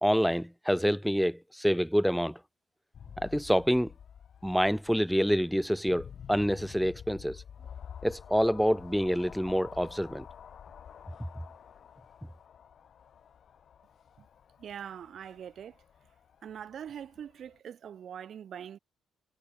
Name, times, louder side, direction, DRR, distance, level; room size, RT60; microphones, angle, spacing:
voice 1, 0.0-2.4 3.2-3.9 4.4-7.4 8.0-10.3, equal, ahead, 0.3 m, -27 dB
sound 1, 2.9-17.6, left 8 dB, 55° left, 4.8 m, -50 dB
voice 2, 14.6-15.8 16.4-18.8, right 9 dB, 60° right, 3.4 m, -43 dB
cardioid pair, 90°, 0 cm